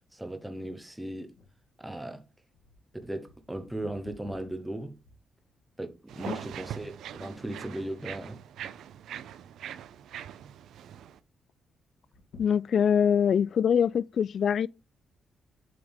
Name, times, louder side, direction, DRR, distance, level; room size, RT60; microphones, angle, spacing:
voice 1, 0.1-1.3 1.8-2.2 3.0-4.9 5.8-6.9 7.2-8.4, right 1 dB, 5° right, 0.9 m, -37 dB
sound 1, 1.4-5.8 6.4-6.5 7.2-7.5 7.8-8.4 9.0-9.7 10.0-10.1 10.4-10.5 12.0-13.1 13.7-13.8, left 3 dB, 75° left, 2.6 m, -54 dB
sound 2, 6.1-11.2, right 10 dB, 85° right, 0.5 m, -42 dB
voice 2, 12.4-14.7, left 8 dB, 55° left, 0.3 m, -24 dB
7.8 x 3.6 x 5.4 m
cardioid pair, 115°, 0 cm